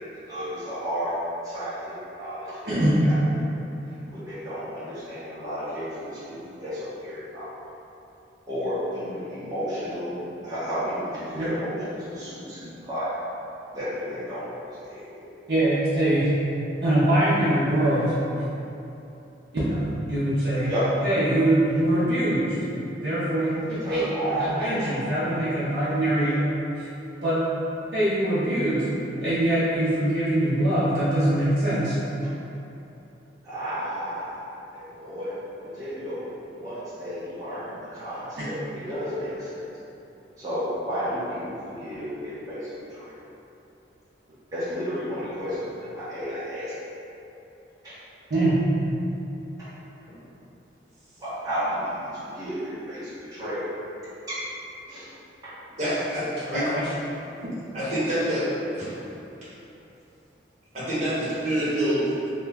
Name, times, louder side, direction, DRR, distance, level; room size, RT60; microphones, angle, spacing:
voice 1, 0.3-1.1 1.4-3.4 3.9-4.0 4.3-7.5 8.5-10.2 10.4-13.1 13.7-14.4 14.8-15.3 20.6-20.8 23.8-25.0 26.2-26.4 33.4-34.4 34.7-35.3 35.6-39.6 40.4-43.1 44.5-45.6 45.9-46.7 47.8-47.9 51.2-53.7 54.3-54.4 54.9-55.1 55.4-55.5, equal, 20° right, -14 dB, 0.7 m, -32 dB
voice 2, 2.7-3.0 11.4-11.5 15.5-16.3 16.8-18.1 19.5-20.7 21.0-22.5 23.0-26.3 26.8-26.9 27.2-27.4 27.9-28.8 29.2-32.0 38.4-38.5 48.3-48.5 56.5-56.9, right 1 dB, 60° right, -11 dB, 0.6 m, -23 dB
voice 3, 55.8-56.2 56.5-56.7 57.7-58.9 60.7-62.3, right 1 dB, 40° right, -11 dB, 1.0 m, -26 dB
2.9 x 2.2 x 3.4 m, 2.9 s
head